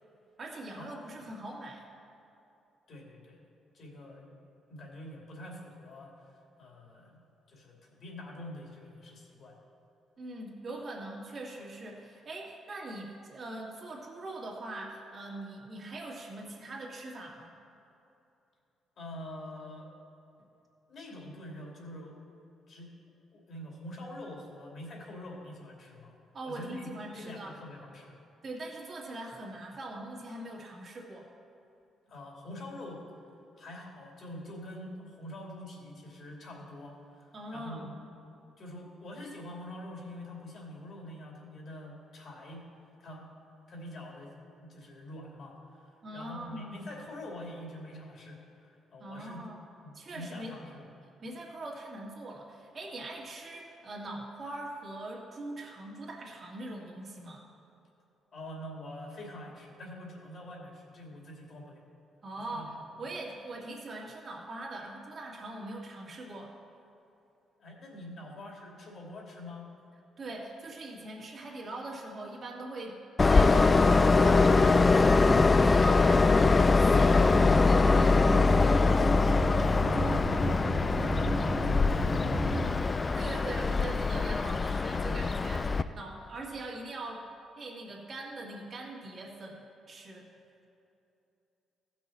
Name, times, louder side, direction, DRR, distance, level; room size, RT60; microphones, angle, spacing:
voice 1, 0.4-1.8 10.2-17.5 26.3-27.6 28.4-31.3 37.3-38.1 46.0-46.9 49.0-49.6 49.9-50.8 51.2-57.4 62.2-66.5 70.2-73.0 73.3-77.4 83.1-87.2 87.6-90.3, right 2 dB, 45° right, -2 dB, 2.1 m, -42 dB
voice 2, 2.9-3.4 3.7-4.4 4.7-7.2 7.5-9.6 19.0-19.9 20.9-22.2 22.7-22.9 23.3-26.1 26.4-28.2 32.1-33.0 33.6-38.2 38.6-42.7 43.0-43.3 43.7-44.4 44.6-49.4 49.8-50.9 58.3-61.8 62.5-62.7 67.6-69.7 79.8-82.6, left 1 dB, 55° left, -1 dB, 2.6 m, -45 dB
Train, 73.2-85.8, left 3 dB, 30° left, 0.3 m, -23 dB
sound 1, 77.3-82.7, equal, 10° left, 1.6 m, -33 dB
15.5 x 6.2 x 4.3 m, 2.8 s
cardioid pair, 90°, 0 cm